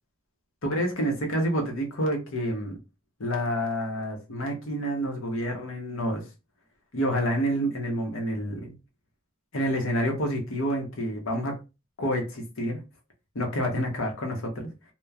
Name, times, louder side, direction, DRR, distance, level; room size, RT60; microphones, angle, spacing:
voice 1, 0.6-2.8 3.2-6.2 6.9-8.7 9.5-11.6 12.0-12.8 13.3-14.7, equal, 80° left, 0.8 m, -28 dB
2.9 x 2.1 x 2.3 m
head